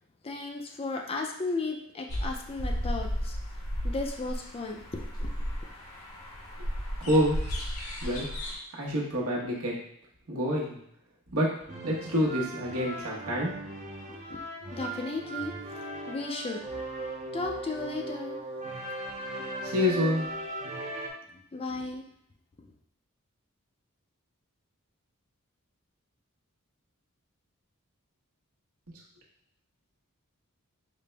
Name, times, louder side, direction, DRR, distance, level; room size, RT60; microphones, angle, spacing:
voice 1, 0.2-3.4 3.8-5.5 14.1-14.4 14.7-15.6 16.1-16.6 17.3-18.4 19.3-19.4 21.3-22.1 22.6-22.7, left 3 dB, 25° left, 2 dB, 0.4 m, -35 dB
sound 1, 2.1-8.6, equal, 75° left, 0.8 m, -34 dB
voice 2, 7.0-7.4 8.0-8.3 8.7-9.8 10.3-10.8 11.3-11.6 11.8-13.5 19.6-20.3, left 1 dB, 85° right, -3 dB, 1.0 m, -27 dB
sound 2, 11.7-21.1, right 2 dB, 30° right, 0.5 m, -38 dB
5.0 x 2.1 x 3.3 m, 0.69 s
head